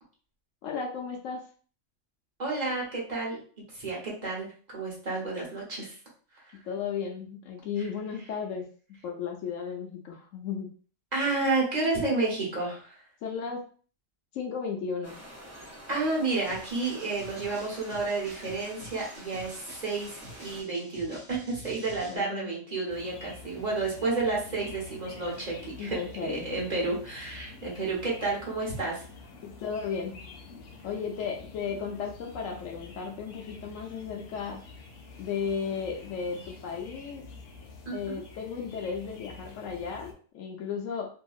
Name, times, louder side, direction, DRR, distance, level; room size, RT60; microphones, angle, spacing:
voice 1, 0.6-1.4 6.6-8.7 9.0-10.7 13.2-13.6 14.3-15.2 22.1-22.5 25.8-26.5 29.4-30.2 30.8-34.6 35.2-37.2 37.9-41.1, left 6 dB, 85° left, 1 dB, 1.0 m, -34 dB
voice 2, 2.4-3.4 3.7-4.5 4.7-6.0 11.1-13.0 15.9-26.0 26.2-29.0 37.9-38.2, right 3 dB, 35° right, -4 dB, 1.1 m, -31 dB
sound 1, 15.0-20.6, equal, 20° right, 0.4 m, -47 dB
sound 2, 16.5-22.2, right 1 dB, 60° right, 1.3 m, -48 dB
sound 3, 22.9-40.1, left 3 dB, 60° left, 0.8 m, -48 dB
2.8 x 2.6 x 2.3 m, 0.43 s
omnidirectional pair, 1.3 m